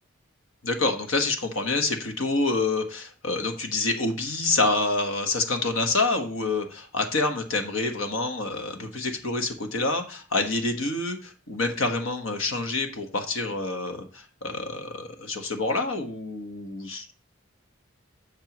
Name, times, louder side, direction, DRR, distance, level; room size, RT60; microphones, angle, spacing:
voice 1, 0.6-17.1, left 3 dB, 85° left, 4 dB, 1.4 m, -27 dB
11.0 x 6.7 x 3.0 m, 0.39 s
head